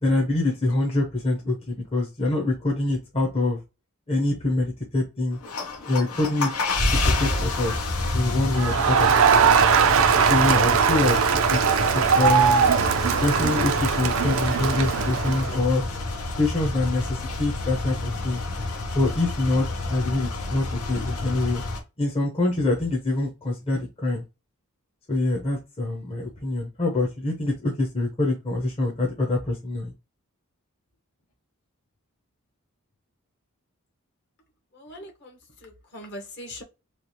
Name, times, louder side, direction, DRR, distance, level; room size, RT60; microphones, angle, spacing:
voice 1, 0.0-3.6 4.1-5.4 5.9-6.5 7.0-7.8 8.1-9.1 10.3-11.2 11.5-11.6 11.9-12.7 13.2-15.8 16.4-18.4 18.9-21.6 22.0-24.2 25.1-29.9, left 2 dB, 25° left, 0.7 m, -25 dB
sound 1, 5.3-21.8, left 2 dB, 90° left, 0.9 m, -29 dB
Crowd, 8.5-15.6, right 6 dB, 65° right, 0.4 m, -20 dB
voice 2, 34.7-36.6, left 1 dB, 50° left, 1.0 m, -41 dB
3.2 x 2.4 x 2.7 m
head